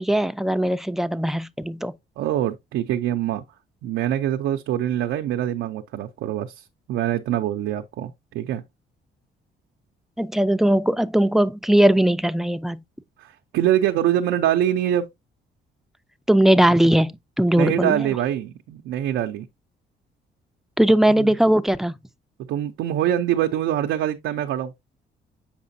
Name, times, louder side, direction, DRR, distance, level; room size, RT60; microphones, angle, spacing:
voice 1, 0.0-2.0 10.2-12.8 16.3-18.1 20.8-21.9, right 1 dB, ahead, 0.5 m, -19 dB
voice 2, 2.2-3.4 3.8-8.6 13.2-15.1 17.6-19.5 21.1-21.3 22.4-24.7, right 11 dB, 90° right, 0.6 m, -24 dB
7.3 x 4.9 x 2.7 m
cardioid pair, 90°, 20 cm